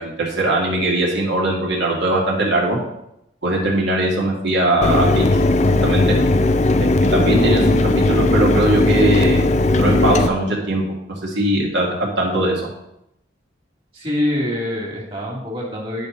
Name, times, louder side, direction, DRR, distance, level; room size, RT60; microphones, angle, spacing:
voice 1, 0.0-2.8 3.4-5.2 5.8-6.2 6.8-10.8 11.2-12.6, right 1 dB, 60° right, -2 dB, 2.5 m, -20 dB
Mechanisms, 4.8-10.3, left 2 dB, 35° left, 0.4 m, -17 dB
voice 2, 13.9-16.1, left 1 dB, 30° right, -3 dB, 2.8 m, -24 dB
11.0 x 5.3 x 4.2 m, 0.81 s
head